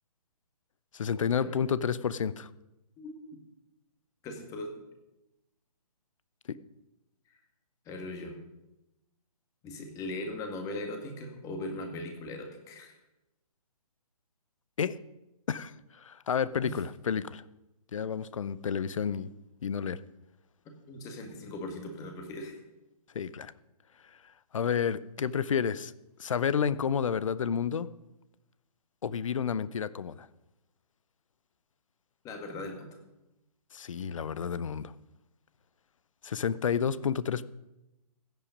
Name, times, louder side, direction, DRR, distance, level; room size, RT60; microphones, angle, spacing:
voice 1, 0.9-2.5 14.8-15.0 15.5-17.4 17.9-19.3 19.6-20.0 23.1-23.5 24.5-25.9 26.2-27.9 29.0-30.3 33.7-34.9 36.2-37.4, left 7 dB, 55° left, 17 dB, 0.7 m, -30 dB
voice 2, 3.0-3.4 4.2-4.8 7.9-8.4 9.6-13.0 16.6-16.8 20.9-22.6 32.2-32.9, left 2 dB, 15° left, 4 dB, 1.9 m, -39 dB
15.5 x 9.2 x 5.3 m, 0.94 s
figure-of-eight pair, 140°, 20 cm